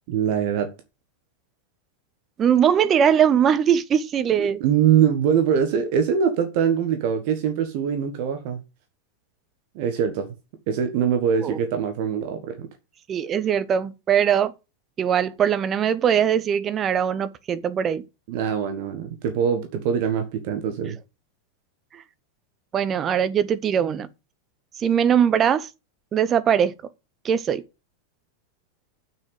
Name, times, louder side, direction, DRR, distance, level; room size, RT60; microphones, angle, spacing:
voice 1, 0.1-0.7 4.4-8.6 9.7-10.3 10.7-12.7 18.3-21.0, right 8 dB, 45° right, 1.5 m, -23 dB
voice 2, 2.4-4.6 11.4-11.6 13.1-14.5 15.0-18.0 21.9-22.0 22.7-24.1 24.8-25.7 26.1-26.7 27.2-27.6, right 8 dB, 25° right, 0.9 m, -21 dB
7.5 x 6.2 x 7.7 m
figure-of-eight pair, 90°, 0 cm